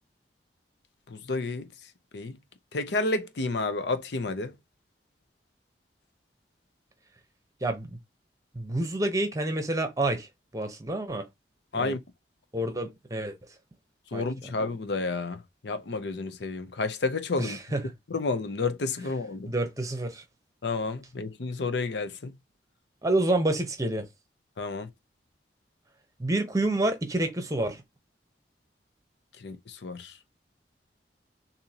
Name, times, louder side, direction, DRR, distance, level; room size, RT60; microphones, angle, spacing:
voice 1, 1.1-1.7 2.1-2.4 2.7-4.5 11.7-12.0 14.1-17.6 18.1-19.5 20.6-22.3 24.6-24.9 29.4-30.1, left 3 dB, 75° left, 0.6 m, -30 dB
voice 2, 7.6-8.0 8.5-10.3 10.5-11.2 11.7-12.0 12.5-13.4 14.1-14.2 17.4-17.8 19.4-20.2 23.0-24.1 26.2-27.8, right 2 dB, 20° right, 0.9 m, -28 dB
6.7 x 2.7 x 2.8 m
head